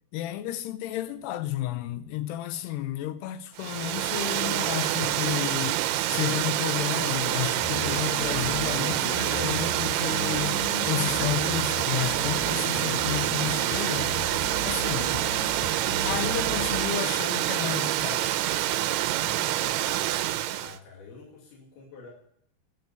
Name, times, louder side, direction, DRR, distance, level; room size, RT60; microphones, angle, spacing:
voice 1, 0.1-14.1 14.6-15.1 16.0-18.4, left 13 dB, 90° left, 2.9 m, -32 dB
Water, 3.6-20.8, right 14 dB, 85° right, 2.6 m, -27 dB
sound 1, 7.6-16.9, left 3 dB, 55° left, 2.1 m, -37 dB
voice 2, 20.5-22.1, left 4 dB, 70° left, 4.4 m, -48 dB
11.5 x 7.7 x 9.1 m
omnidirectional pair, 4.6 m